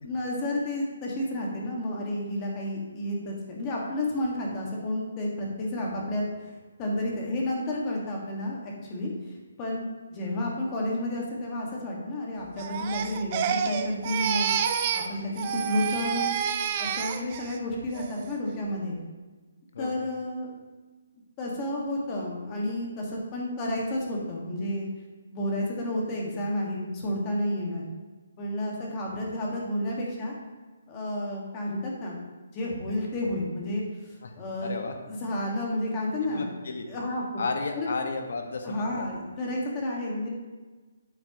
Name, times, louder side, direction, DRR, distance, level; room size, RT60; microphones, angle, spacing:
voice 1, 0.0-6.2 6.8-9.1 9.6-14.6 14.9-16.3 16.8-19.0 19.8-20.5 21.4-24.9 25.3-27.8 28.4-30.3 30.9-32.2 32.5-34.7 35.1-36.6 36.9-37.2 37.7-37.9 38.6-40.3, left 1 dB, 20° left, -2 dB, 1.6 m, -31 dB
Crying sobbing, 12.6-15.1 15.4-17.6 17.9-18.3, right 8 dB, 25° right, 0.4 m, -29 dB
voice 2, 34.6-34.9 36.2-36.9 37.4-39.1, left 3 dB, 60° left, 4 dB, 1.2 m, -33 dB
8.6 x 8.5 x 2.9 m, 1.3 s
hypercardioid pair, 170°, 0 cm